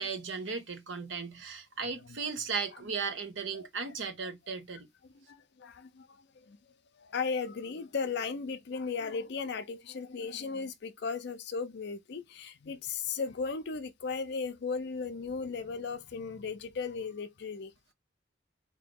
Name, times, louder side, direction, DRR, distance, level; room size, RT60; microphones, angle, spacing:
voice 1, 0.0-4.9, right 5 dB, 75° right, 1.1 m, -36 dB
voice 2, 5.1-6.6 7.0-17.7, left 5 dB, 60° left, 0.5 m, -36 dB
3.8 x 2.7 x 3.5 m
head